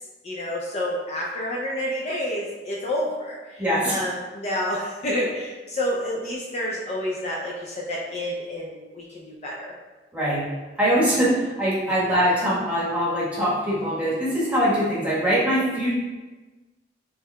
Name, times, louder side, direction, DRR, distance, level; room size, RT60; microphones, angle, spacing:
voice 1, 0.2-9.7 12.0-12.1, left 1 dB, 40° left, -3 dB, 0.4 m, -29 dB
voice 2, 3.6-4.0 10.1-10.4 10.8-15.9, equal, 10° right, -8 dB, 1.2 m, -22 dB
4.5 x 3.4 x 2.2 m, 1.2 s
head